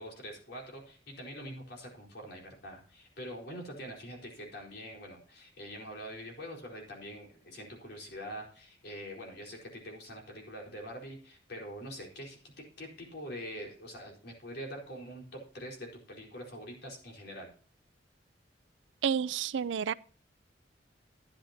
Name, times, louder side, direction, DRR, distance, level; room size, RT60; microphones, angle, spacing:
voice 1, 0.0-17.5, equal, 60° left, 4.5 m, -44 dB
voice 2, 19.0-19.9, right 7 dB, 80° right, 0.4 m, -30 dB
13.0 x 9.8 x 2.8 m
head